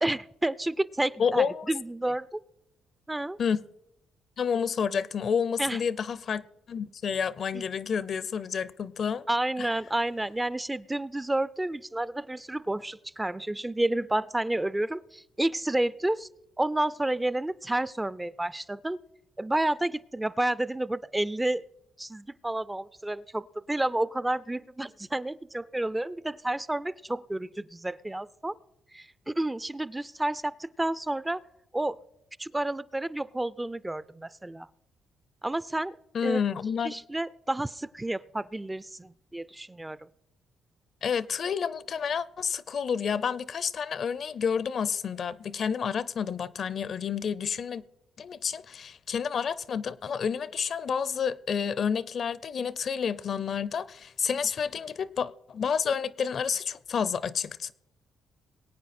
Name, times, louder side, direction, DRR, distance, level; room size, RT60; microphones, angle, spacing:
voice 1, 0.0-2.4 3.1-3.4 5.6-5.8 7.5-7.6 9.3-16.3 16.6-19.0 19.4-21.6 22.0-28.5 28.9-31.4 31.7-32.0 32.4-34.7 35.4-35.9 36.2-36.4 36.8-40.0, right 1 dB, 10° right, 0.4 m, -30 dB
voice 2, 1.2-1.7 3.4-3.6 4.4-9.3 9.6-9.7 36.1-37.0 41.0-47.8 48.2-57.7, left 7 dB, 55° left, 0.6 m, -29 dB
21.5 x 9.0 x 4.3 m
cardioid pair, 90°, 0 cm